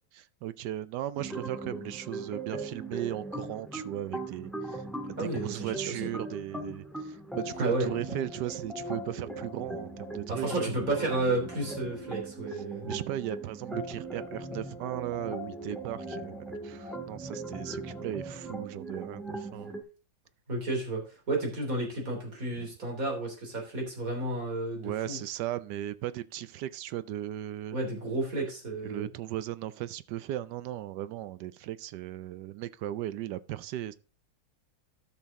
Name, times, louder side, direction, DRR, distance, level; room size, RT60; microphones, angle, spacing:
voice 1, 0.2-10.7 12.8-16.4 16.6-19.7 22.6-22.7 24.8-27.8 28.8-33.9, right 13 dB, 75° right, 1.1 m, -37 dB
sound 1, 1.1-19.8, right 2 dB, ahead, 1.8 m, -39 dB
voice 2, 5.2-6.0 7.6-7.9 10.3-13.0 20.5-25.2 27.7-29.1, right 2 dB, 45° right, 3.5 m, -32 dB
12.5 x 6.1 x 3.6 m
omnidirectional pair, 2.0 m